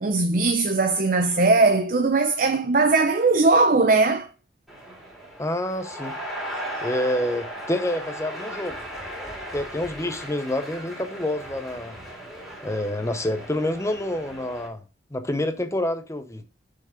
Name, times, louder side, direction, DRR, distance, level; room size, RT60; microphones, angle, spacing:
voice 1, 0.0-4.3, right 3 dB, 50° right, 0.7 m, -19 dB
sound 1, 4.7-14.7, equal, ahead, 3.4 m, -37 dB
voice 2, 5.4-6.2 6.8-8.8 9.5-12.0 12.6-14.8 15.1-16.4, left 1 dB, 15° left, 0.8 m, -27 dB
7.2 x 5.6 x 5.1 m
head